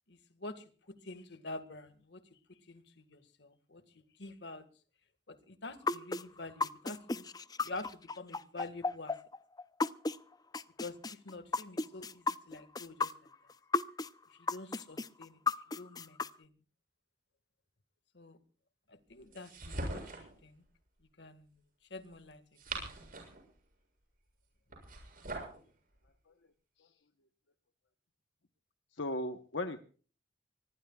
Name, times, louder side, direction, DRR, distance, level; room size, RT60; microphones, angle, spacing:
voice 1, 0.1-2.2 2.5-3.8 4.2-4.7 5.3-7.3 7.6-9.1 10.8-13.1 14.4-15.4 15.8-16.5 18.1-18.4 18.9-20.6 21.2-21.5 21.9-22.4 22.8-22.9, left 2 dB, 65° left, 10 dB, 1.9 m, -47 dB
sound 1, 5.9-10.2 10.5-14.1 14.5-16.3, left 4 dB, 20° left, 0.6 m, -33 dB
sound 2, 19.3-20.3 22.3-23.4 24.7-25.6, right 2 dB, 50° right, 7.4 m, -41 dB
voice 2, 28.9-29.8, left 1 dB, 85° left, 7 dB, 1.1 m, -37 dB
24.5 x 19.5 x 2.4 m, 0.41 s
head